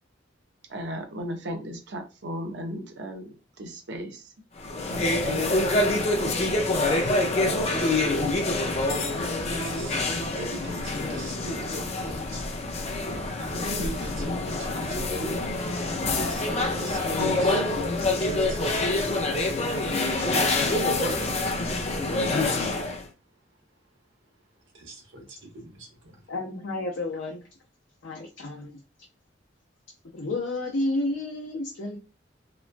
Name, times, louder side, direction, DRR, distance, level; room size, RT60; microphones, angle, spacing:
voice 1, 0.7-3.3 3.6-4.2 4.9-5.6 6.1-6.6, equal, 65° right, 4 dB, 0.6 m, -36 dB
sound 1, 4.6-23.0, left 2 dB, 35° left, 0.4 m, -26 dB
voice 2, 7.2-12.4 13.3-22.7 24.7-26.2, right 1 dB, 85° right, -1 dB, 1.1 m, -40 dB
voice 3, 26.3-27.5 28.0-28.8 30.1-32.0, left 2 dB, 85° left, -1 dB, 0.5 m, -31 dB
3.0 x 2.2 x 2.4 m, 0.31 s
head